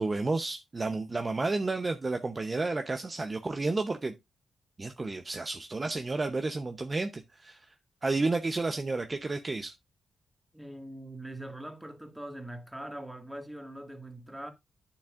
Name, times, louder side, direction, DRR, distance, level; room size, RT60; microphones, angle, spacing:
voice 1, 0.0-4.1 4.8-7.7 8.0-9.7, right 3 dB, 30° right, 0.8 m, -31 dB
voice 2, 10.5-14.5, right 1 dB, 5° right, 1.8 m, -42 dB
9.4 x 7.2 x 2.5 m
cardioid pair, 95°, 0 cm